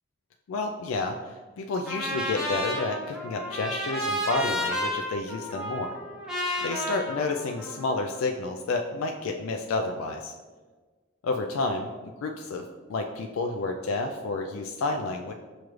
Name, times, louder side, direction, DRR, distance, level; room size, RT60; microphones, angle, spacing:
voice 1, 0.5-5.9 6.6-10.3 11.2-11.9 12.2-15.3, left 3 dB, 85° left, 3 dB, 0.3 m, -30 dB
Trumpet, 1.9-8.1, equal, 5° right, 0.6 m, -32 dB
6.3 x 2.4 x 3.0 m, 1.3 s
head